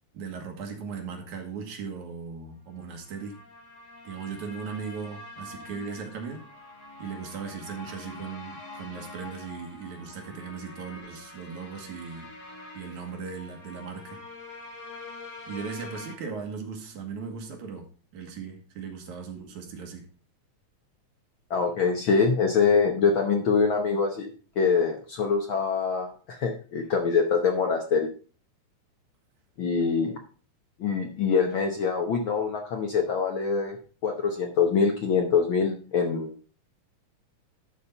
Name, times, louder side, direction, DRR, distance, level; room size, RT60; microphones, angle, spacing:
voice 1, 0.1-3.4 4.0-6.4 7.0-12.3 12.7-14.2 15.5-20.1, right 5 dB, 80° right, 3 dB, 3.0 m, -38 dB
sound 1, 2.8-16.1, left 2 dB, 80° left, 4.5 m, -45 dB
voice 2, 21.5-24.3 24.6-28.1 29.6-30.2 30.8-33.8 34.0-36.3, left 5 dB, 65° left, 3 dB, 1.3 m, -24 dB
11.5 x 4.3 x 5.4 m, 0.40 s
omnidirectional pair, 3.3 m